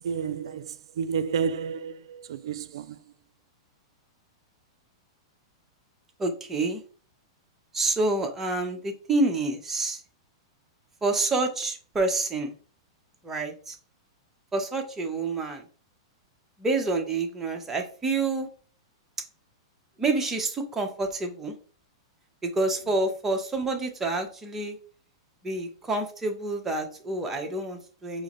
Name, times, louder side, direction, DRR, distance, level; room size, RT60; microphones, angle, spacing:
voice 1, 0.0-3.0, right 6 dB, 75° right, 0.3 m, -31 dB
voice 2, 6.2-6.8 7.7-10.0 11.0-12.5 13.2-13.7 14.5-15.6 16.6-18.5 20.0-21.5 22.4-24.8 25.4-28.2, right 2 dB, 15° right, 0.8 m, -28 dB
4.8 x 2.0 x 3.0 m
hypercardioid pair, 135°, 3 cm